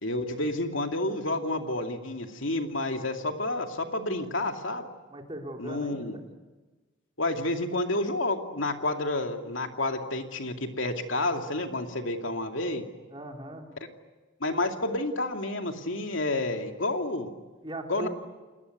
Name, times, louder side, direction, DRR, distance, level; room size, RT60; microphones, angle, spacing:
voice 1, 0.0-4.9 5.6-6.1 7.2-12.8 14.4-17.3 17.9-18.1, left 2 dB, 75° left, 4 dB, 2.5 m, -30 dB
voice 2, 5.1-6.2 13.1-13.7 17.6-18.1, right 1 dB, 25° right, 2 dB, 3.4 m, -38 dB
29.5 x 20.5 x 9.6 m, 1.3 s
head